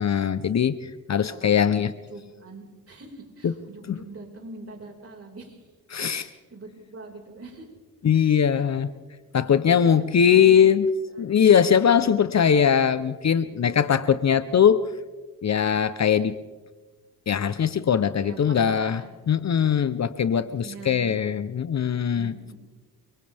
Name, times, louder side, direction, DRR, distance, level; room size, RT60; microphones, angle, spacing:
voice 1, 0.0-1.9 3.4-3.5 3.9-4.0 5.9-6.3 8.0-8.9 9.3-10.9 11.2-14.8 15.4-16.4 17.3-19.0 19.3-22.3, left 8 dB, 45° left, 14 dB, 0.8 m, -21 dB
voice 2, 1.3-5.7 6.1-7.7 8.1-8.6 9.5-10.8 11.1-11.3 11.5-12.1 13.4-14.5 18.2-19.1 20.4-21.2 22.1-22.5, right 3 dB, 35° right, 1 dB, 5.1 m, -44 dB
30.0 x 24.5 x 3.5 m, 1.3 s
cardioid pair, 100°, 39 cm